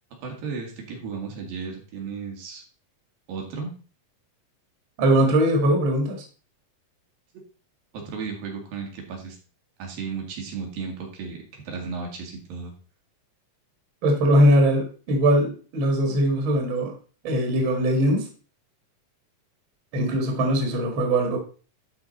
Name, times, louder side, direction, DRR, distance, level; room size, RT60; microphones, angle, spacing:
voice 1, 0.2-2.6 3.3-3.7 7.9-9.4 9.8-12.7, right 5 dB, 80° right, 1 dB, 3.7 m, -34 dB
voice 2, 5.0-6.2 14.0-16.9 17.2-18.2 19.9-21.4, equal, 45° right, 3 dB, 2.1 m, -21 dB
12.0 x 4.5 x 4.1 m, 0.37 s
omnidirectional pair, 4.0 m